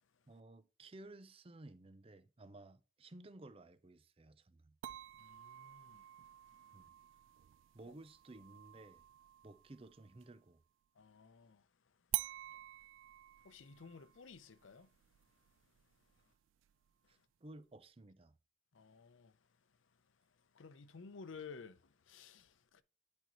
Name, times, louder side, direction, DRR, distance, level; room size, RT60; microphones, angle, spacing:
voice 1, 0.3-4.8 6.7-6.9 7.7-9.0 9.4-10.6 17.1-18.4, right 2 dB, 30° right, 0.5 m, -56 dB
sound 1, 4.8-10.4 12.1-17.1, right 17 dB, 85° right, 0.3 m, -48 dB
voice 2, 5.2-6.0 11.0-11.7 13.4-14.9 18.7-19.3 20.5-21.8 22.1-22.8, left 5 dB, 85° left, 0.6 m, -54 dB
10.5 x 4.4 x 3.0 m
head